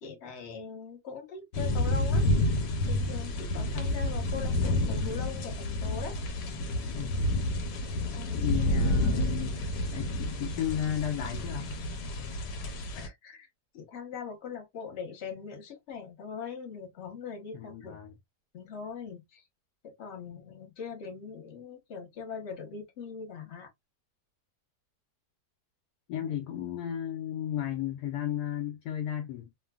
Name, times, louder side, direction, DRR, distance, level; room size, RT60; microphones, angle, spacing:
voice 1, 0.0-2.3 2.8-6.2 8.0-8.5 12.9-13.5 13.7-18.0 18.5-19.4 19.8-23.7 26.2-26.4, left 6 dB, 45° left, 1.1 m, -41 dB
sound 1, 1.5-13.1, left 1 dB, 90° left, 1.3 m, -29 dB
voice 2, 6.9-7.2 8.3-9.6 9.9-11.7 17.5-18.2 26.1-29.6, left 11 dB, 75° left, 1.1 m, -34 dB
3.0 x 2.2 x 2.3 m
omnidirectional pair, 1.8 m